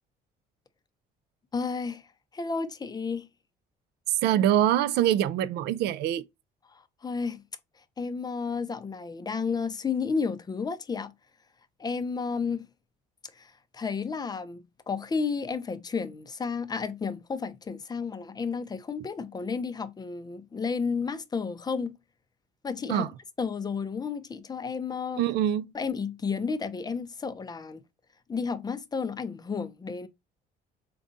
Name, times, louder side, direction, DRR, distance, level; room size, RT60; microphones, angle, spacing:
voice 1, 1.5-2.1 2.3-3.3 7.0-7.4 8.0-11.1 11.8-12.7 13.4-22.0 22.6-23.1 23.4-25.3 25.7-27.8 28.3-30.1, left 5 dB, 25° left, 0.5 m, -32 dB
voice 2, 4.1-6.3 22.9-23.1 25.2-25.7, right 11 dB, 80° right, 0.4 m, -24 dB
5.0 x 2.2 x 2.5 m
cardioid pair, 110°, 17 cm